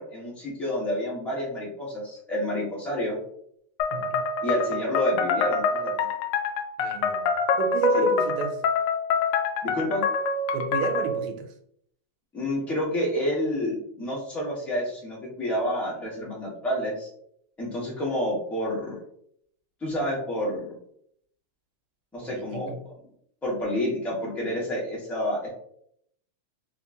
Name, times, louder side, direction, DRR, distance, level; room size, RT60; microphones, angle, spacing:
voice 1, 0.0-3.2 4.4-5.9 7.9-8.0 9.6-10.0 12.3-17.1 17.6-19.0 19.8-20.6 22.1-22.7 23.4-25.5, equal, ahead, -6 dB, 0.7 m, -29 dB
sound 1, 3.8-11.2, left 4 dB, 85° left, 1.5 m, -26 dB
voice 2, 3.9-4.2 6.8-7.2 7.6-8.6 10.5-11.5 22.2-22.8, right 6 dB, 80° right, 6 dB, 1.5 m, -30 dB
3.6 x 3.1 x 2.6 m, 0.69 s
omnidirectional pair, 2.4 m